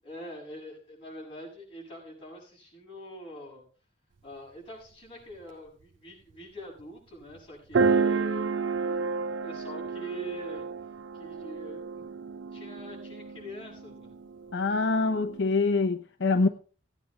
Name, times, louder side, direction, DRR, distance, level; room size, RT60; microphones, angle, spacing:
voice 1, 0.0-3.6 4.2-9.1 9.4-10.7 11.1-12.0 12.5-14.1, equal, 30° left, 7.2 m, -44 dB
sound 1, 6.8-6.9 7.7-15.4, right 4 dB, 75° right, 0.5 m, -31 dB
voice 2, 14.5-16.5, left 3 dB, 70° left, 0.7 m, -25 dB
17.0 x 9.2 x 3.5 m
head